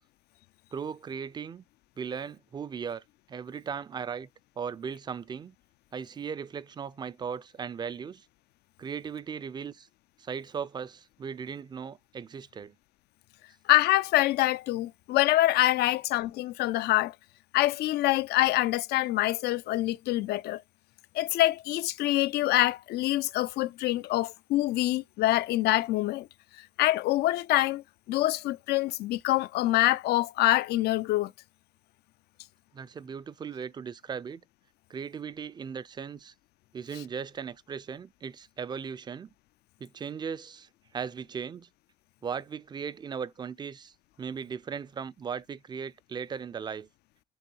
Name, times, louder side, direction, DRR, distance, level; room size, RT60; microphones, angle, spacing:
voice 1, 0.7-1.6 2.0-4.3 4.6-5.6 5.9-8.3 8.8-9.9 10.2-12.7 32.7-34.4 34.9-36.3 36.7-39.3 39.8-41.7 42.2-46.9, right 6 dB, 25° right, 0.4 m, -37 dB
voice 2, 13.7-17.1 17.5-20.6 21.1-26.3 26.6-31.3, left 16 dB, 75° left, 0.4 m, -25 dB
7.0 x 3.2 x 4.5 m
cardioid pair, 110°, 17 cm